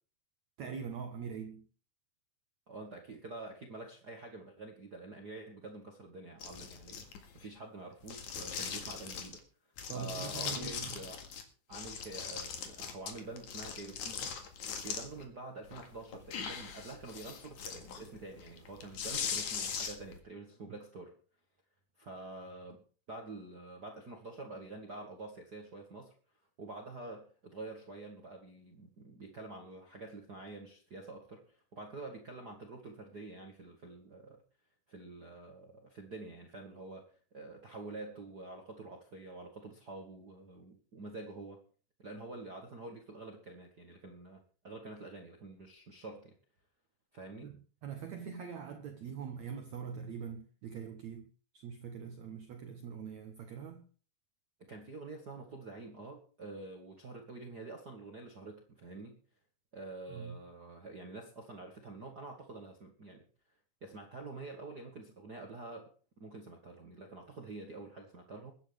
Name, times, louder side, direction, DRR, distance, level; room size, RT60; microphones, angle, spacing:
voice 1, 0.6-1.7 9.9-11.1 47.4-47.5 47.8-53.9 60.1-60.4, right 7 dB, 65° right, 1.9 m, -43 dB
voice 2, 2.7-7.1 7.3-9.4 9.9-11.2 11.7-14.3 14.8-21.2 22.0-26.1 26.6-34.4 34.9-41.6 42.0-46.4 47.1-47.5 54.6-59.2 59.7-63.2 63.8-65.9 66.2-68.5, right 2 dB, 45° right, 1.4 m, -47 dB
sound 1, 6.4-7.4 8.0-9.4 9.8-11.4 11.7-15.3 15.7-20.2, left 7 dB, 55° left, 3.0 m, -41 dB
22.5 x 10.5 x 3.5 m
omnidirectional pair, 4.4 m